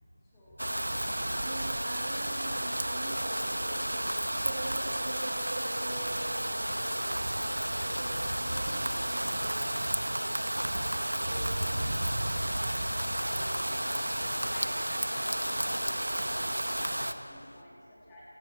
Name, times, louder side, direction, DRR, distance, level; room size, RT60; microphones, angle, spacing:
voice 1, 0.2-1.8 4.5-4.7 12.5-18.2, equal, 10° left, -10 dB, 3.2 m, -52 dB
sound 1, 0.6-17.1, right 1 dB, 80° right, 1.5 m, -32 dB
voice 2, 1.4-7.3 7.8-10.6 11.1-12.0, right 1 dB, 40° right, -3 dB, 4.3 m, -43 dB
sound 2, 6.6-16.2, right 1 dB, 60° right, 1.8 m, -52 dB
Stream / Liquid, 12.3-17.6, left 2 dB, 45° left, 1.2 m, -49 dB
29.0 x 27.5 x 3.3 m, 2.5 s
figure-of-eight pair, 170°, 0 cm